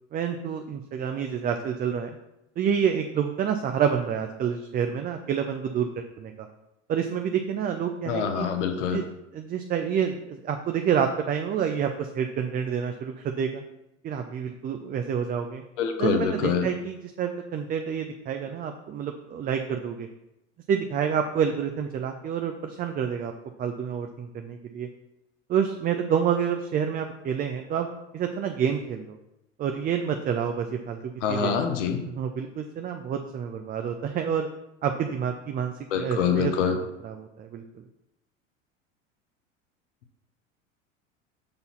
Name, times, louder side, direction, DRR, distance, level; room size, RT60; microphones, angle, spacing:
voice 1, 0.1-2.1 2.6-6.5 6.9-8.5 8.9-9.1 9.3-13.6 14.0-15.6 16.0-20.1 20.7-23.3 23.6-24.9 25.5-27.9 28.1-29.2 29.6-31.5 32.1-34.5 34.8-36.5 37.0-37.6, right 7 dB, 25° right, 5 dB, 0.5 m, -28 dB
voice 2, 8.1-9.0 15.8-16.7 31.2-32.0 35.9-36.8, left 7 dB, 65° left, 6 dB, 1.0 m, -25 dB
6.8 x 4.0 x 5.7 m, 0.89 s
figure-of-eight pair, 80°, 39 cm